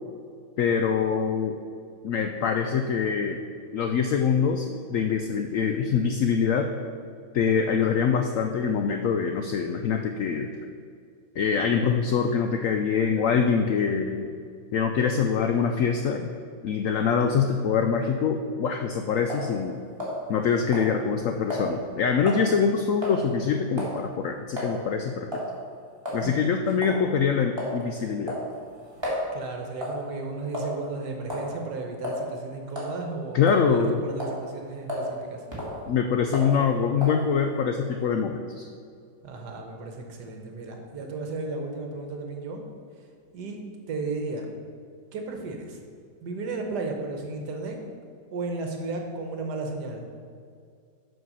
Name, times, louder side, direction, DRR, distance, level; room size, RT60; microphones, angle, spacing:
voice 1, 0.6-1.6 2.0-3.4 3.7-6.7 7.3-10.5 11.4-14.3 14.7-16.3 16.6-19.8 20.3-25.4 26.1-28.4 33.3-34.0 35.9-38.7, left 6 dB, 90° left, 5 dB, 0.7 m, -24 dB
sound 1, 19.3-19.5 20.0-20.4 20.7-20.9 21.5-21.7 22.3-22.5 23.0-23.2 23.8-24.0 24.6-24.7 25.3-25.5 26.1-26.2 26.8-27.0 27.6-27.8 28.3-29.2 29.8-30.0 30.5-30.9 31.3-31.5 32.0-32.2 32.7-32.9 33.5-33.9 34.2-34.4 34.9-35.1 35.5-35.8 36.3-36.5 37.0-37.2, left 1 dB, 15° right, 2.2 m, -32 dB
voice 2, 29.3-35.4 39.2-42.6 43.3-43.6 43.9-44.5 45.1-45.8 46.2-47.8 48.3-50.1, right 3 dB, 70° right, 2 dB, 1.5 m, -34 dB
7.4 x 5.8 x 5.5 m, 2.2 s
omnidirectional pair, 1.9 m